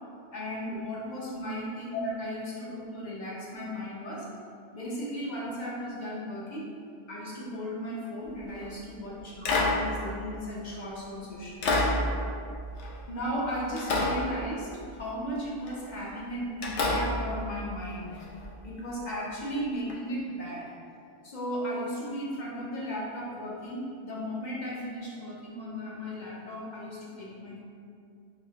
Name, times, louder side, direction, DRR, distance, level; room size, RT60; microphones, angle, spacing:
voice 1, 0.3-4.3 4.7-6.7 7.1-12.0 13.1-18.2 18.6-20.7 21.2-27.6, equal, 45° left, -5 dB, 0.7 m, -36 dB
sound 1, 8.4-8.7 9.5-10.9 11.6-13.4 13.8-15.0 15.6-15.9 16.6-18.5 19.9-20.0, left 2 dB, 85° left, 0.9 m, -30 dB
5.5 x 2.1 x 2.7 m, 2.4 s
omnidirectional pair, 1.1 m